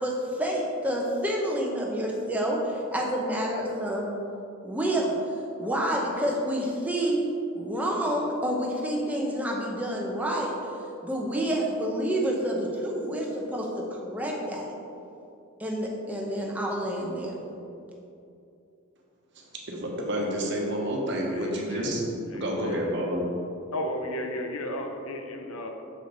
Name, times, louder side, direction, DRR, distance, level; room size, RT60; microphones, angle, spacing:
voice 1, 0.0-4.1 4.6-5.2 5.6-7.2 7.5-10.5 11.0-14.7 15.6-17.4, right 1 dB, 5° right, -2 dB, 0.8 m, -28 dB
voice 2, 19.7-22.0 22.3-23.2, equal, 55° right, -1 dB, 1.1 m, -29 dB
voice 3, 21.3-21.9 22.3-22.9 23.7-25.7, left 1 dB, 75° left, 3 dB, 0.7 m, -34 dB
6.6 x 5.1 x 3.9 m, 2.7 s
head